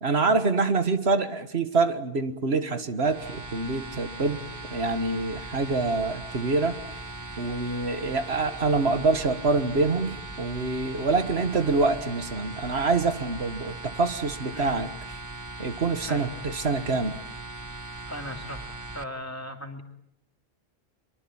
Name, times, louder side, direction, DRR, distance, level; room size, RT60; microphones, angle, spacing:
voice 1, 0.0-4.4 4.7-6.8 7.4-14.9 15.6-17.2, right 3 dB, 80° right, 10 dB, 1.8 m, -26 dB
sound 1, 3.0-19.0, right 2 dB, 20° right, 1.1 m, -39 dB
voice 2, 18.1-19.8, left 1 dB, 15° left, 4 dB, 2.8 m, -38 dB
23.5 x 23.5 x 8.7 m, 0.74 s
omnidirectional pair, 1.1 m